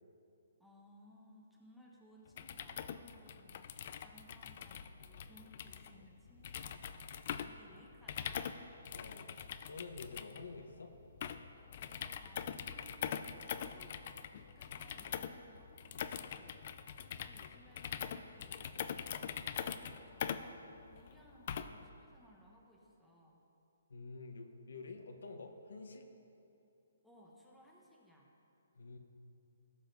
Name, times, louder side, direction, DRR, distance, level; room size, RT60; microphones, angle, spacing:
voice 1, 0.6-8.7 11.8-23.4 27.0-28.3, equal, ahead, -4 dB, 0.8 m, -62 dB
sound 1, 2.3-21.9, left 8 dB, 40° left, 0.3 m, -43 dB
voice 2, 8.9-9.4 9.7-10.9 23.9-26.1 28.7-29.0, left 3 dB, 85° left, 5 dB, 1.0 m, -48 dB
16.0 x 7.2 x 2.7 m, 2.8 s
hypercardioid pair, 165°, 0 cm